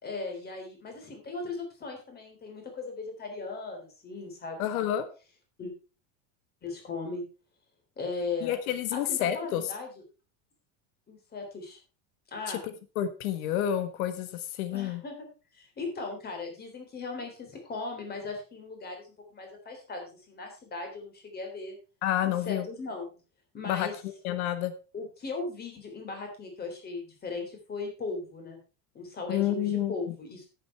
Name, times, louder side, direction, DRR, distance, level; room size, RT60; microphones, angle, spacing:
voice 1, 0.0-4.7 5.6-5.7 6.6-7.2 8.0-8.6 8.9-10.0 11.1-11.8 12.3-12.6 14.7-15.3 15.5-21.8 22.2-23.1 23.5-23.9 24.9-28.6 28.9-30.5, left 3 dB, 25° left, 4 dB, 3.7 m, -38 dB
voice 2, 4.6-5.0 8.4-9.6 12.5-12.6 12.9-15.0 22.0-22.7 23.6-23.9 24.2-24.7 29.3-29.9, left 11 dB, 85° left, 11 dB, 1.5 m, -29 dB
10.5 x 9.2 x 4.5 m, 0.33 s
cardioid pair, 165°, 42 cm